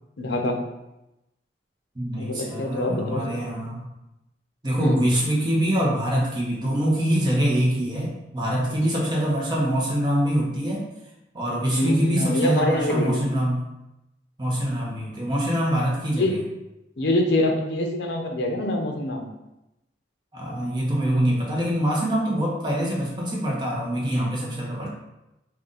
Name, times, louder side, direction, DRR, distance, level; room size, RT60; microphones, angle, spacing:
voice 1, 0.2-0.6 2.1-3.5 4.8-5.0 11.7-13.3 16.1-16.4 17.0-19.3, left 1 dB, 70° left, 3 dB, 0.6 m, -25 dB
voice 2, 1.9-3.9 4.6-10.8 11.3-13.6 14.4-16.3 20.3-24.9, equal, 25° right, -4 dB, 0.9 m, -24 dB
3.8 x 2.5 x 3.9 m, 0.93 s
head